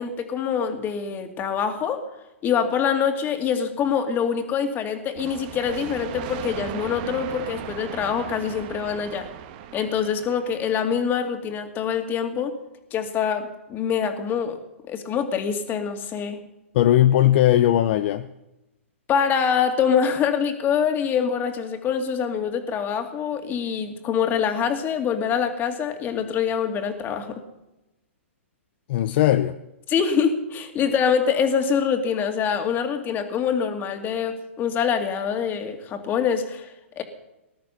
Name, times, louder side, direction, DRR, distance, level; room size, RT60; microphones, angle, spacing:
voice 1, 0.0-2.0 2.4-9.3 9.7-12.6 12.9-14.6 14.9-16.4 19.1-27.4 29.9-37.0, left 7 dB, 25° left, 5 dB, 2.5 m, -25 dB
sound 1, 5.2-10.7, right 11 dB, 45° right, 1.7 m, -37 dB
voice 2, 16.7-18.3 28.9-29.5, left 13 dB, 50° left, 10 dB, 0.8 m, -18 dB
19.5 x 11.5 x 5.8 m, 0.96 s
hypercardioid pair, 120°, 7 cm